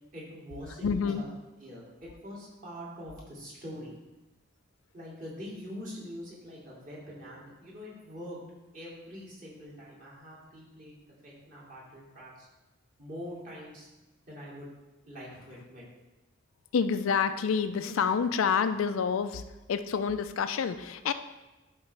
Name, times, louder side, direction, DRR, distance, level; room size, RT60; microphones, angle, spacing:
voice 1, 0.1-1.3 1.6-3.9 4.9-8.4 8.7-12.5 13.0-13.9 14.3-14.7 15.0-15.8, equal, 40° right, -6 dB, 2.4 m, -44 dB
voice 2, 0.8-1.2 16.7-19.4 19.7-21.1, left 6 dB, 75° left, 10 dB, 0.4 m, -28 dB
11.5 x 4.0 x 3.3 m, 1.1 s
head